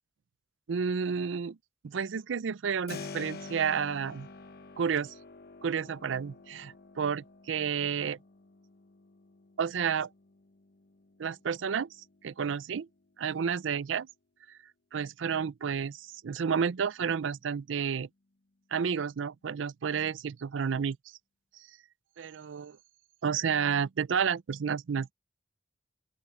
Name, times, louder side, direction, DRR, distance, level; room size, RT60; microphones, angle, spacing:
voice 1, 0.7-1.6 1.8-4.3 4.8-5.1 5.6-8.2 9.6-10.1 11.2-11.9 12.2-12.9 13.2-14.1 14.5-14.6 14.9-18.1 18.7-21.0 22.2-22.8 23.2-25.1, right 6 dB, 80° right, 0.5 m, -31 dB
Keyboard (musical), 2.9-13.6, left 4 dB, 55° left, 1.0 m, -49 dB
open air
head